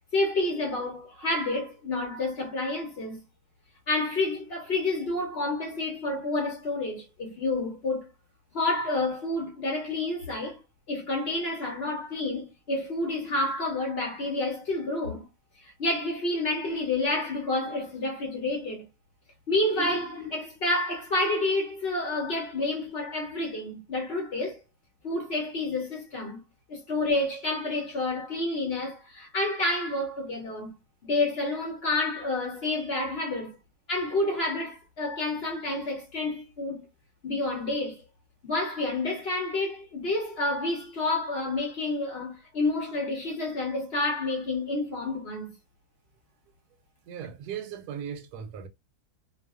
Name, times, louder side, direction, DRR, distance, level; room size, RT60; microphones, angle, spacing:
voice 1, 0.1-3.2 3.9-8.1 8.5-10.6 10.9-15.3 15.6-18.8 19.5-24.6 25.0-26.4 26.7-30.7 31.0-33.6 33.9-36.8 37.2-38.0 38.4-45.5, left 2 dB, 50° left, 0.8 m, -29 dB
voice 2, 47.0-48.7, right 8 dB, 90° right, 1.1 m, -37 dB
2.5 x 2.4 x 2.3 m
omnidirectional pair, 1.6 m